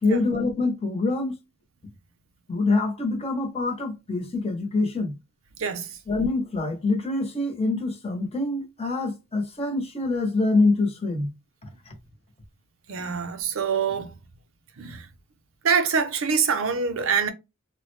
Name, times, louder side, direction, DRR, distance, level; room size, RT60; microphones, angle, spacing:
voice 1, 0.0-1.3 2.5-5.1 6.1-11.3 11.9-12.0, left 3 dB, 30° left, 0.9 m, -25 dB
voice 2, 12.9-14.1 14.8-15.1 15.6-17.3, right 6 dB, 90° right, 0.6 m, -25 dB
3.3 x 2.2 x 3.1 m
head